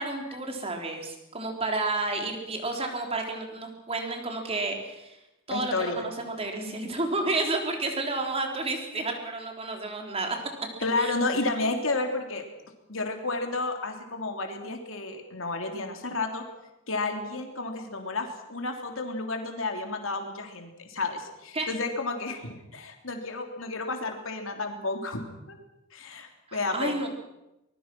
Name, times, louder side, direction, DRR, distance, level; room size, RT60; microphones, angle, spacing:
voice 1, 0.0-5.2 5.5-10.4 11.0-11.1 21.5-21.7 26.5-27.1, right 2 dB, 30° right, 3 dB, 3.7 m, -31 dB
voice 2, 5.5-5.9 6.6-6.9 10.8-12.4 12.9-16.4 16.9-25.6 25.9-27.0, left 3 dB, 70° left, 4 dB, 3.5 m, -31 dB
24.0 x 21.5 x 6.2 m, 0.93 s
head